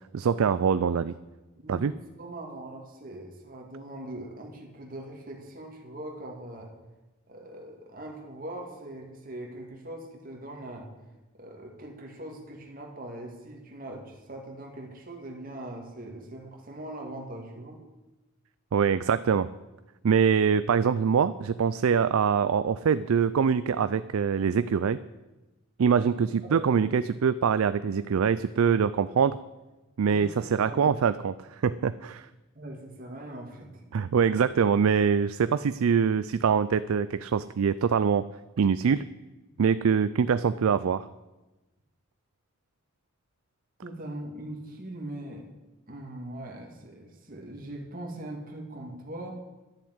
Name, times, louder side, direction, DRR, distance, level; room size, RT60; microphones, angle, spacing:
voice 1, 0.1-1.1 1.7-1.9 18.7-19.5 20.0-25.0 25.8-29.4 30.0-32.3 33.9-38.2 38.6-39.0 39.6-41.1, right 6 dB, 85° right, 14 dB, 0.4 m, -24 dB
voice 2, 1.6-6.7 7.3-10.9 11.3-17.8 26.1-26.2 26.5-26.9 30.1-30.9 32.5-33.9 43.8-45.5 45.9-49.3, right 1 dB, 40° right, 0 dB, 2.1 m, -41 dB
11.5 x 7.1 x 9.4 m, 1.1 s
head